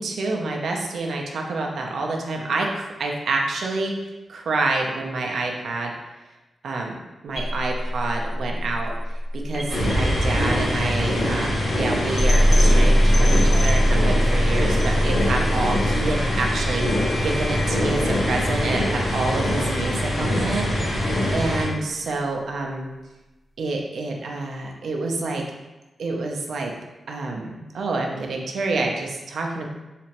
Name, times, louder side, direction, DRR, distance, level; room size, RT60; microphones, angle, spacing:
voice 1, 0.0-3.9 4.3-5.9 6.6-7.0 7.2-8.9 9.3-22.9 23.6-25.4 26.0-26.7 27.1-29.7, right 3 dB, 75° right, 1 dB, 0.5 m, -28 dB
sound 1, 7.3-19.4, equal, 35° left, 0.7 m, -22 dB
sound 2, 9.7-21.7, left 1 dB, 80° left, 1.3 m, -24 dB
3.3 x 2.9 x 2.9 m, 1.1 s
wide cardioid pair, 155°, 0 cm